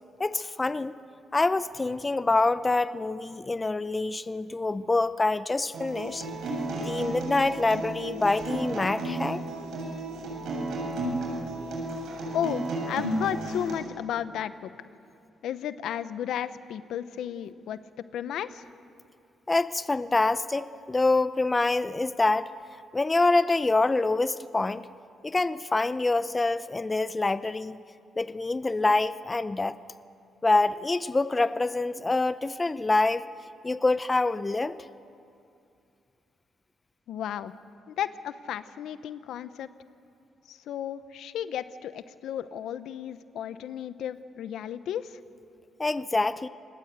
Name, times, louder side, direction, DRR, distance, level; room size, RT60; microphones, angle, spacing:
voice 1, 0.2-0.9 1.3-6.3 6.8-9.4 19.5-22.5 22.9-24.9 25.2-27.8 28.2-29.8 30.4-33.2 33.6-34.8 45.8-46.5, left 3 dB, 20° left, 14 dB, 0.7 m, -26 dB
Acoustic guitar, 5.7-13.7, right 2 dB, 80° right, 7.6 m, -33 dB
voice 2, 12.3-14.7 15.4-18.7 37.1-37.5 37.9-39.7 40.5-45.2, left 10 dB, 80° left, 13 dB, 0.8 m, -34 dB
27.5 x 19.5 x 8.2 m, 2.6 s
cardioid pair, 90°, 0 cm